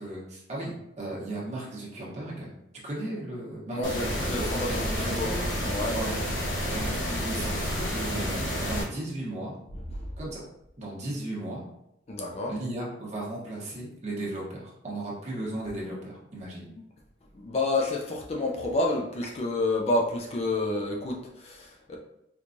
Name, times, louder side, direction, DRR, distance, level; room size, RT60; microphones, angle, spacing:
voice 1, 0.0-2.5 2.8-5.4 5.9-6.1 6.7-9.5 10.2-10.4 10.8-11.6 12.5-16.7, right 1 dB, 40° right, -4 dB, 1.0 m, -35 dB
voice 2, 3.7-5.3 5.6-5.9 10.0-10.1 12.1-12.6 16.7-16.8 17.3-22.0, left 2 dB, 35° left, -1 dB, 0.4 m, -29 dB
sound 1, 3.8-8.8, equal, 85° left, 0.9 m, -30 dB
4.4 x 2.3 x 2.6 m, 0.81 s
head